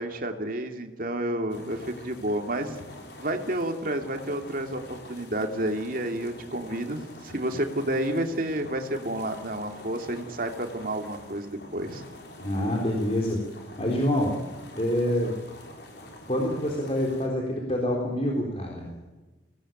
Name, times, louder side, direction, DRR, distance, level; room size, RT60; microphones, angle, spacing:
voice 1, 0.0-2.8 3.2-12.0, right 1 dB, 50° right, 5 dB, 2.9 m, -30 dB
sound 1, 1.5-17.3, left 1 dB, 60° left, 5.0 m, -46 dB
voice 2, 12.4-14.4 14.7-15.3 16.3-18.9, left 1 dB, 35° left, 0 dB, 3.8 m, -27 dB
23.5 x 18.0 x 9.2 m, 1.2 s
head